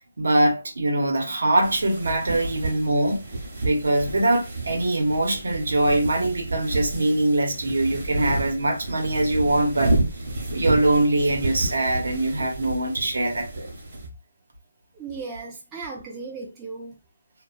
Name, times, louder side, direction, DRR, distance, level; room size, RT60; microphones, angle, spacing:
voice 1, 0.2-3.2 3.6-10.0 10.5-13.7, right 1 dB, 75° right, 0.9 m, -23 dB
sound 1, 1.6-14.1, right 2 dB, 40° right, 0.8 m, -30 dB
voice 2, 14.9-17.0, right 4 dB, 10° right, 0.4 m, -36 dB
2.4 x 2.3 x 2.2 m
hypercardioid pair, 175°, 0 cm